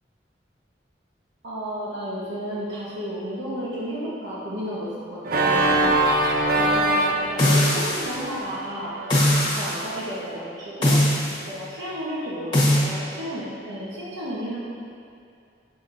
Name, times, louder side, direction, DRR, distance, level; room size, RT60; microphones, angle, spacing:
voice 1, 1.4-5.7 6.5-8.9 9.4-11.0 11.4-14.6, equal, 90° right, -8 dB, 1.0 m, -32 dB
Organ, 5.2-10.1, right 2 dB, 55° right, 0.5 m, -24 dB
sound 1, 7.4-8.2 9.1-9.8 10.8-11.4 12.5-12.9, left 1 dB, 25° left, 1.2 m, -20 dB
7.9 x 5.6 x 2.6 m, 2.4 s
head